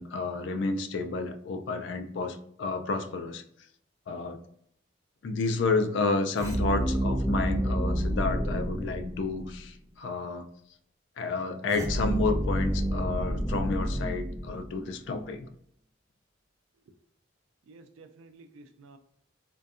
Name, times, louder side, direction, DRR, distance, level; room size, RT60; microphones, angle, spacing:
voice 1, 0.0-3.4 4.1-4.4 5.2-10.5 11.2-15.5, left 3 dB, 65° left, 7 dB, 0.3 m, -30 dB
sound 1, 6.4-9.7 11.7-15.0, equal, 15° right, 0.4 m, -29 dB
voice 2, 17.6-19.0, right 3 dB, 85° right, 8 dB, 0.4 m, -52 dB
2.6 x 2.2 x 2.4 m, 0.70 s
head